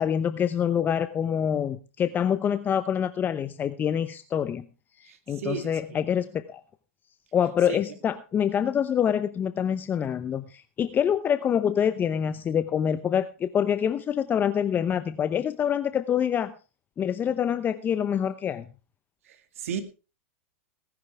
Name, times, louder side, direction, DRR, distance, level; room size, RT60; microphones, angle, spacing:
voice 1, 0.0-4.6 5.0-6.6 7.3-16.5 17.0-18.6, left 8 dB, 25° left, 12 dB, 0.8 m, -26 dB
voice 2, 5.1-5.7 7.7-7.8 19.6-19.8, right 8 dB, 75° right, 8 dB, 2.2 m, -33 dB
18.5 x 11.0 x 3.5 m, 0.33 s
hypercardioid pair, 110°, 8 cm